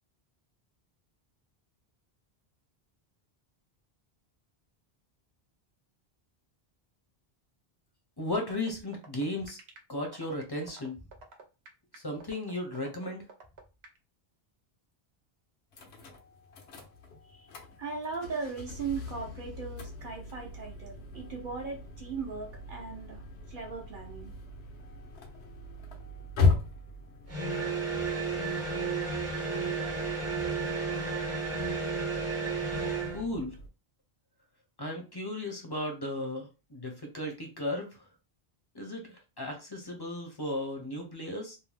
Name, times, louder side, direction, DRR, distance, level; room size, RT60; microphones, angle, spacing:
voice 1, 8.2-9.6 9.9-11.0 11.9-13.3 33.1-33.6 34.8-38.1 38.7-41.6, left 1 dB, 30° left, 2 dB, 0.5 m, -35 dB
sound 1, 8.5-14.0, right 4 dB, 90° right, 0.9 m, -49 dB
sound 2, 15.7-33.7, left 4 dB, 80° left, 0.9 m, -37 dB
voice 2, 17.8-24.3, right 4 dB, 60° right, 0 dB, 0.7 m, -38 dB
sound 3, 27.3-33.2, right 4 dB, 20° right, 0.5 m, -32 dB
2.7 x 2.0 x 3.2 m, 0.30 s
omnidirectional pair, 1.0 m